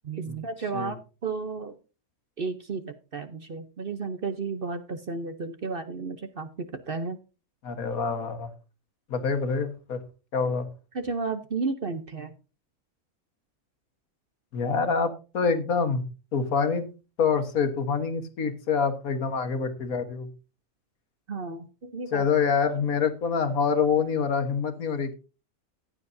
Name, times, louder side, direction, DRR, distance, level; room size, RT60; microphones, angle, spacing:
voice 1, 0.0-1.8 2.4-6.5 6.9-7.2 10.9-12.3 21.3-22.2, right 4 dB, 45° right, 8 dB, 0.9 m, -33 dB
voice 2, 7.6-8.5 9.1-10.0 10.3-10.7 14.5-16.0 16.3-16.9 17.2-20.3 22.1-25.1, left 5 dB, 70° left, 8 dB, 1.8 m, -26 dB
15.0 x 10.0 x 2.7 m, 0.32 s
omnidirectional pair, 1.6 m